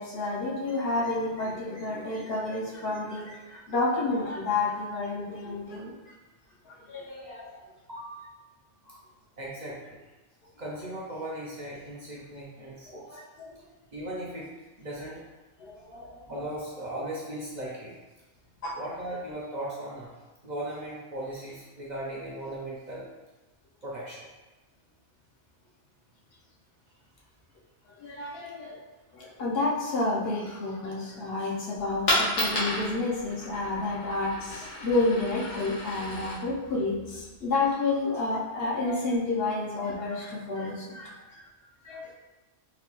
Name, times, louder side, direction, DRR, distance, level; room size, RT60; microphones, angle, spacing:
voice 1, 0.0-6.1 6.6-7.5 8.9-9.0 13.1-13.6 15.6-16.3 18.6-18.8 27.9-28.8 29.1-41.4 41.8-42.1, left 3 dB, 60° left, -3 dB, 0.8 m, -30 dB
voice 2, 7.5-8.1 9.4-10.0 10.6-13.2 13.9-14.5 14.8-15.2 16.0-17.9 18.7-23.1 23.8-24.2 41.6-41.7, right 1 dB, 50° right, -6 dB, 0.6 m, -38 dB
Coin (dropping), 31.7-37.7, left 1 dB, 85° left, 1.4 m, -33 dB
3.9 x 2.2 x 3.0 m, 1.1 s
omnidirectional pair, 1.2 m